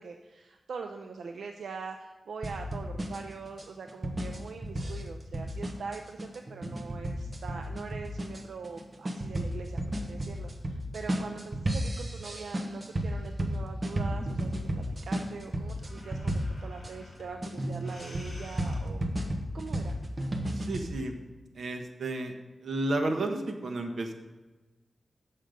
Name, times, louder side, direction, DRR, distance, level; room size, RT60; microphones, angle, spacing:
voice 1, 0.0-19.1 19.5-20.0, right 5 dB, 85° right, 4 dB, 0.5 m, -43 dB
sound 1, 2.4-16.9 17.4-20.9, right 1 dB, 30° right, 1.0 m, -33 dB
sound 2, 14.0-19.3, left 1 dB, 45° left, 2.7 m, -50 dB
voice 2, 20.5-21.1 21.5-22.3 22.6-24.1, right 2 dB, 60° right, 4 dB, 1.1 m, -32 dB
7.7 x 6.5 x 5.1 m, 1.2 s
wide cardioid pair, 140°, 0 cm